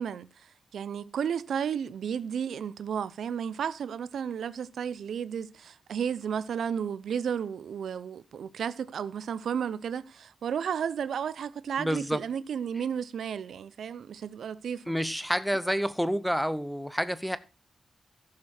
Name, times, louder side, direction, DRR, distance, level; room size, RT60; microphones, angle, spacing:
voice 1, 0.0-14.9, right 7 dB, 75° right, 0.6 m, -33 dB
voice 2, 11.8-12.2 14.9-17.4, equal, ahead, 0.6 m, -29 dB
15.0 x 6.7 x 4.3 m
wide cardioid pair, 170°, 0 cm